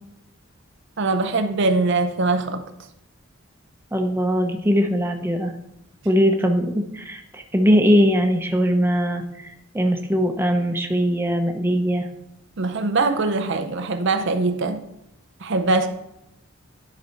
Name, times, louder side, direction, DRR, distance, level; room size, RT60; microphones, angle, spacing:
voice 1, 1.0-2.6 12.6-14.8 15.4-15.9, right 3 dB, 60° right, 0.6 m, -22 dB
voice 2, 3.9-5.5 6.0-12.1, equal, 10° right, 0.8 m, -21 dB
10.5 x 4.2 x 4.5 m
head